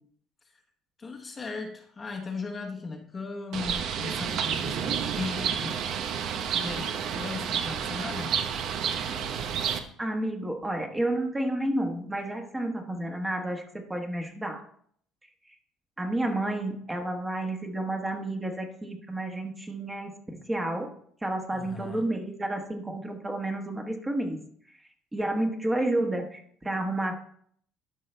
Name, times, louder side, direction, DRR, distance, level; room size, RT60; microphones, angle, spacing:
voice 1, 1.0-5.8 6.5-8.4 21.5-22.0, left 4 dB, 25° left, 3 dB, 1.0 m, -37 dB
Bird, 3.5-9.8, right 7 dB, 55° right, 0.8 m, -30 dB
voice 2, 10.0-14.6 16.0-20.9 21.2-24.4 25.1-27.2, right 1 dB, 10° right, 3 dB, 1.2 m, -30 dB
12.0 x 5.5 x 3.3 m, 0.62 s
cardioid pair, 135°, 0 cm